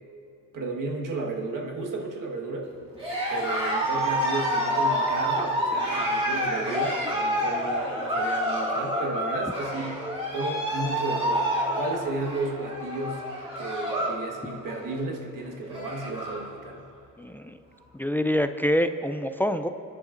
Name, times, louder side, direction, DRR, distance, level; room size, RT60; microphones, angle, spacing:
voice 1, 0.5-2.7 3.3-10.0 10.3-11.5 11.7-13.2 13.5-16.8, right 2 dB, 70° right, 0 dB, 1.5 m, -33 dB
Cheering, 2.9-14.2 14.5-14.9 15.4-15.5 15.6-16.5, equal, 15° right, 2.5 m, -28 dB
voice 2, 17.2-17.6 17.9-19.7, equal, 5° left, 9 dB, 0.4 m, -26 dB
27.0 x 10.5 x 2.5 m, 2.8 s
cardioid pair, 100°, 33 cm